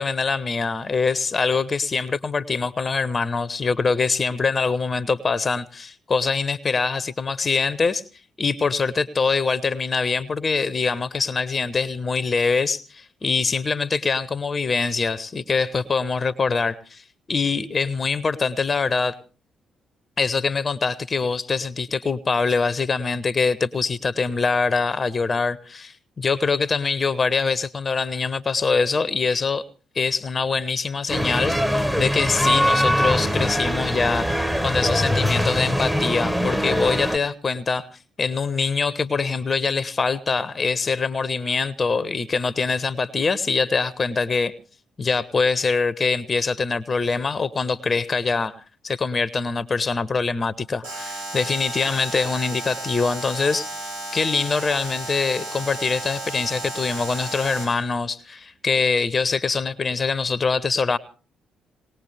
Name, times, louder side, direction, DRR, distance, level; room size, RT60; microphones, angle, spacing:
voice 1, 0.0-8.0 8.4-19.2 20.2-29.6 29.9-31.5 32.0-37.9 38.2-44.5 45.0-48.6 48.8-61.0, left 4 dB, 35° left, 18 dB, 0.7 m, -24 dB
sound 1, 31.1-37.2, equal, 5° right, 0.9 m, -22 dB
Alarm, 50.8-57.9, right 1 dB, 75° right, 1.9 m, -33 dB
19.5 x 19.0 x 3.3 m, 0.36 s
figure-of-eight pair, 40°, 0 cm